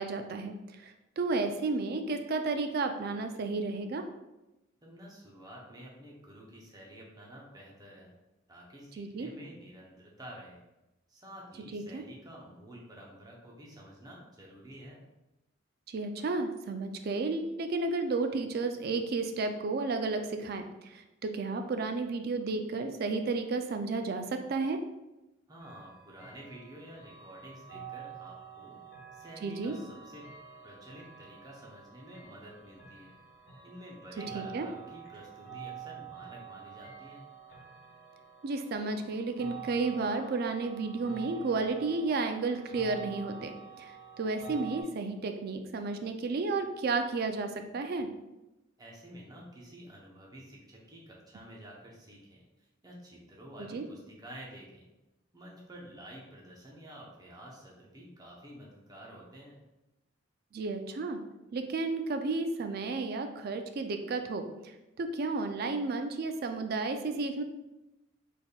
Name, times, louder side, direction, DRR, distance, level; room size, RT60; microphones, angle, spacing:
voice 1, 0.0-4.1 9.0-9.3 11.7-12.0 15.9-24.8 29.4-29.8 34.3-34.7 38.4-48.1 53.7-53.8 60.5-61.2 61.5-67.4, right 3 dB, 50° right, 7 dB, 0.3 m, -32 dB
voice 2, 4.8-8.1 8.5-10.6 11.1-15.0 25.5-28.8 29.1-30.2 30.6-33.2 33.6-37.3 48.8-52.4 52.8-54.9 55.3-59.6, right 1 dB, 20° right, -3 dB, 0.8 m, -50 dB
sound 1, 25.6-44.8, right 7 dB, 70° left, 1.2 m, -48 dB
4.1 x 3.4 x 2.3 m, 0.99 s
head